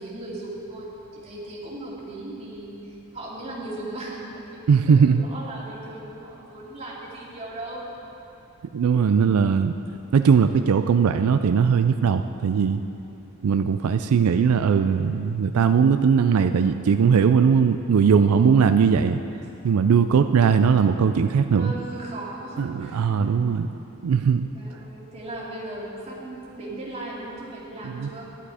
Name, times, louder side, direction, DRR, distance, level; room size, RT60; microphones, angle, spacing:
voice 1, 0.0-7.9 18.1-18.5 21.5-23.5 24.5-28.3, right 2 dB, 30° right, -6 dB, 2.7 m, -37 dB
voice 2, 4.7-5.2 8.7-9.7 10.1-12.8 13.4-19.2 19.6-21.7 22.6-23.7 24.0-24.5 27.8-28.1, right 6 dB, 90° right, 9 dB, 0.4 m, -19 dB
11.5 x 11.0 x 4.9 m, 2.8 s
head